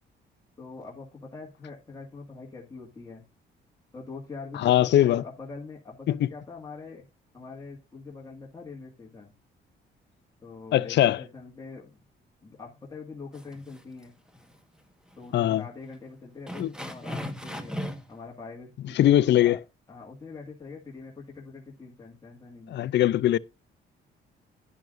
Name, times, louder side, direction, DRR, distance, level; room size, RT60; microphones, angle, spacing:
voice 1, 0.6-3.2 3.9-7.1 7.3-9.3 10.4-12.0 12.4-14.1 15.2-17.8 18.1-19.6 19.9-22.8, left 4 dB, 20° left, 2.0 m, -43 dB
voice 2, 4.6-5.2 10.7-11.2 15.3-15.6 16.6-16.7 19.0-19.6 22.7-23.4, left 12 dB, 60° left, 0.5 m, -21 dB
sound 1, 13.3-14.0 14.3-14.5 15.1-15.2 15.6-15.7 16.5-18.1, equal, 5° right, 1.4 m, -36 dB
10.5 x 9.3 x 2.6 m
cardioid pair, 90°, 20 cm